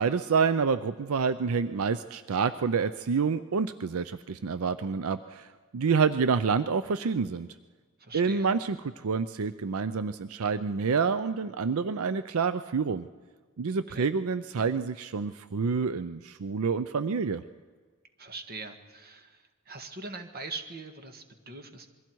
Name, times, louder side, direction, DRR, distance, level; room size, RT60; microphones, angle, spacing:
voice 1, 0.0-7.5 8.1-13.1 13.6-17.4, right 5 dB, 80° right, 13 dB, 0.5 m, -28 dB
voice 2, 8.0-8.5 13.9-14.1 18.2-21.9, right 3 dB, 45° right, 6 dB, 1.6 m, -42 dB
27.5 x 22.0 x 4.6 m, 1.5 s
head